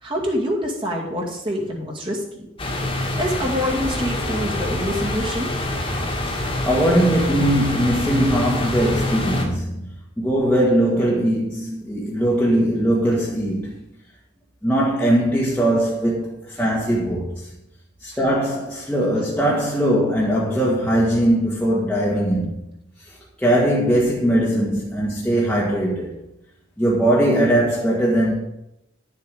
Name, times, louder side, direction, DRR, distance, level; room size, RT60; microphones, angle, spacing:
voice 1, 0.0-2.5 3.2-5.5, equal, 25° right, 2.2 m, -26 dB
sound 1, 2.6-9.5, left 1 dB, 30° left, 1.9 m, -26 dB
voice 2, 6.3-13.9 14.6-17.5 18.0-22.6 23.1-26.2 26.8-28.3, right 1 dB, 5° left, 1.5 m, -20 dB
11.0 x 7.3 x 5.0 m
head